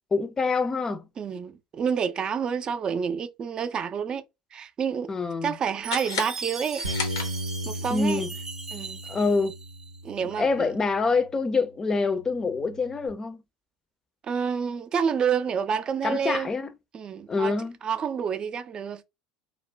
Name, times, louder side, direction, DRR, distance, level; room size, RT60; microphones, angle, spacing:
voice 1, 0.1-1.0 5.1-5.5 7.9-8.3 9.1-9.5 10.2-13.4 16.0-16.7 17.3-17.7, left 4 dB, 25° left, 0.5 m, -26 dB
voice 2, 1.2-4.2 4.5-5.1 5.4-6.8 7.7-8.2 8.7-9.0 10.0-10.7 14.2-16.5 16.9-19.0, right 7 dB, 35° right, 0.4 m, -29 dB
sound 1, 5.8-7.8, left 6 dB, 80° left, 0.6 m, -34 dB
Chime, 5.8-10.0, right 3 dB, 20° right, 0.8 m, -38 dB
Bass guitar, 6.8-11.3 11.9-13.1, right 1 dB, 90° right, 0.6 m, -37 dB
2.4 x 2.1 x 3.2 m
hypercardioid pair, 70°, 2 cm